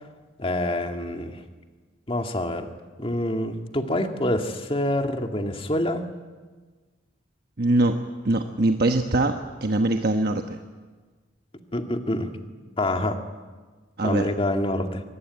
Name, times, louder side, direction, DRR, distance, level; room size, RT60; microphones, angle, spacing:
voice 1, 0.4-1.4 2.1-2.7 3.0-6.0 11.7-12.4 12.8-13.2 14.0-15.0, left 1 dB, 30° left, 5 dB, 2.0 m, -26 dB
voice 2, 7.6-8.0 8.2-10.6 14.0-14.3, right 2 dB, 55° right, 5 dB, 1.2 m, -22 dB
24.0 x 20.0 x 9.7 m, 1.4 s
head